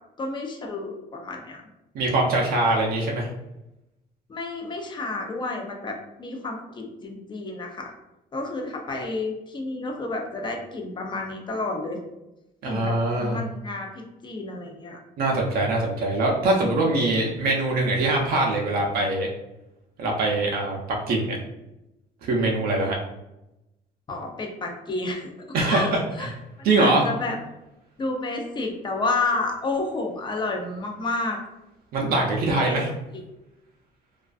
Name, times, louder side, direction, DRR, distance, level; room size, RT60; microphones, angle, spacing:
voice 1, 0.2-1.6 4.3-7.9 8.3-12.0 12.6-15.0 24.1-25.3 25.6-26.3 26.6-27.4 28.0-31.4 32.7-32.8, left 3 dB, 25° left, 2 dB, 0.5 m, -30 dB
voice 2, 1.9-3.3 12.6-13.4 15.2-19.3 20.0-21.4 22.2-23.0 25.5-26.3 26.6-27.1 31.9-32.9, right 2 dB, 60° right, -1 dB, 0.5 m, -23 dB
2.4 x 2.3 x 2.4 m, 0.93 s
cardioid pair, 110°, 17 cm